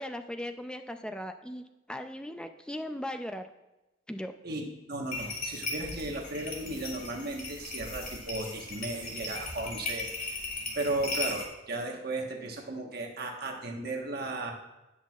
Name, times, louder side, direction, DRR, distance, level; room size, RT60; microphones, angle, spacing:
voice 1, 0.0-3.5 4.1-4.4, left 1 dB, 5° left, 7 dB, 0.4 m, -38 dB
voice 2, 4.4-10.1 10.7-14.5, right 2 dB, 50° right, 1 dB, 1.3 m, -35 dB
sound 1, 5.1-11.4, left 2 dB, 45° left, 2.1 m, -37 dB
17.5 x 6.1 x 2.4 m, 1.0 s
head